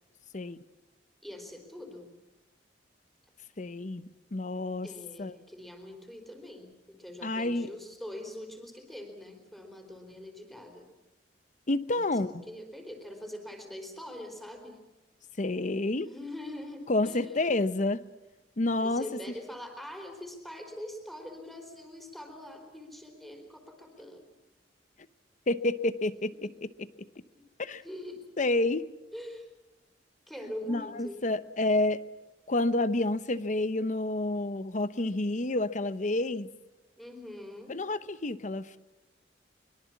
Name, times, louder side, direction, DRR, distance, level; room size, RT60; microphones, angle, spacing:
voice 1, 1.2-2.1 4.8-10.9 11.9-14.8 16.0-17.4 18.8-24.3 27.3-27.5 27.8-28.2 29.1-29.5 30.3-31.2 37.0-37.8, left 1 dB, ahead, 4 dB, 4.3 m, -43 dB
voice 2, 3.6-4.9 5.2-5.3 7.2-7.7 11.7-12.3 15.4-16.1 16.9-18.0 18.6-19.0 25.5-26.9 27.6-27.8 28.4-28.8 30.7-32.0 32.5-36.5 37.7-38.8, left 2 dB, 45° left, 14 dB, 0.9 m, -29 dB
24.0 x 22.5 x 7.3 m, 1.1 s
head